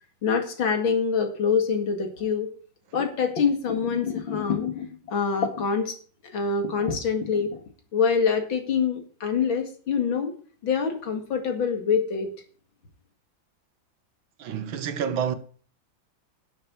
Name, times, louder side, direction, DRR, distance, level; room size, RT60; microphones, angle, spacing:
voice 1, 0.2-2.5 2.9-5.9 6.3-7.6 7.9-10.3 10.6-12.3, left 6 dB, 85° left, 2.9 m, -25 dB
voice 2, 14.4-15.4, right 8 dB, 90° right, 1.9 m, -28 dB
11.0 x 6.8 x 6.0 m
omnidirectional pair, 2.1 m